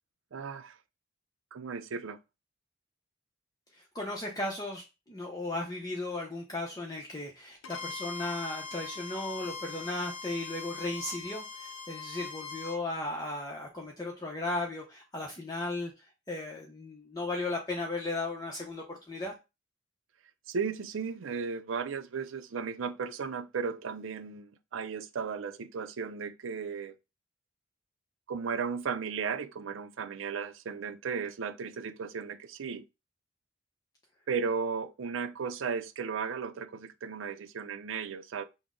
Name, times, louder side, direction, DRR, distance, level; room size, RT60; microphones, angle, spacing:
voice 1, 0.3-0.8 1.5-2.2 20.5-26.9 28.3-32.8 34.3-38.4, right 5 dB, 90° right, 0.5 m, -35 dB
voice 2, 3.7-15.9 16.3-19.3, left 2 dB, 20° left, 0.7 m, -36 dB
Bowed string instrument, 7.6-12.8, left 4 dB, 85° left, 0.7 m, -41 dB
6.0 x 2.1 x 3.6 m
head